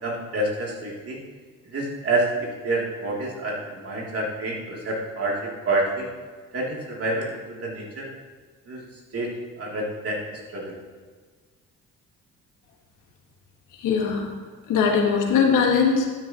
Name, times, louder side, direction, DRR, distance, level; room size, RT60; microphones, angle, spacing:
voice 1, 0.0-1.2 1.7-6.1 6.5-8.1 8.7-8.8 9.1-10.8, right 2 dB, 50° right, -3 dB, 3.1 m, -28 dB
voice 2, 13.7-14.3 14.7-16.1, left 6 dB, 90° left, 1 dB, 1.8 m, -20 dB
12.0 x 9.8 x 3.0 m, 1.5 s
cardioid pair, 90°, 30 cm